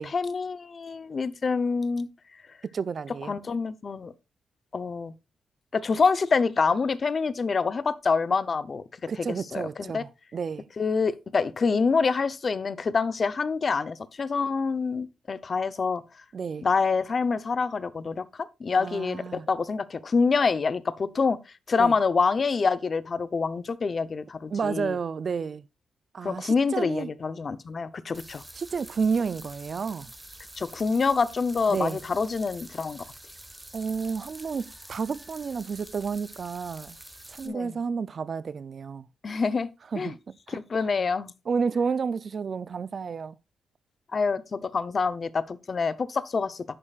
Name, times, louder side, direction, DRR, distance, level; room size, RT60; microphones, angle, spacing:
voice 1, 0.0-2.1 3.3-4.1 4.7-5.1 5.7-8.8 9.2-10.0 10.8-16.0 16.6-21.4 21.7-25.0 26.2-28.4 30.6-33.0 37.4-37.8 39.2-39.7 40.0-40.1 40.5-41.3 44.1-46.6, left 4 dB, 35° left, 0.7 m, -26 dB
voice 2, 2.7-3.3 9.1-10.6 16.3-16.7 18.8-19.5 21.8-21.9 24.5-25.6 26.1-27.1 28.6-30.1 31.7-32.0 33.7-37.0 37.3-39.1 39.9-40.2 40.5-40.6 41.5-43.4, right 5 dB, 40° right, 0.4 m, -31 dB
sound 1, 28.1-37.5, right 1 dB, 5° right, 1.3 m, -47 dB
11.0 x 8.8 x 2.4 m
wide cardioid pair, 150°, 0 cm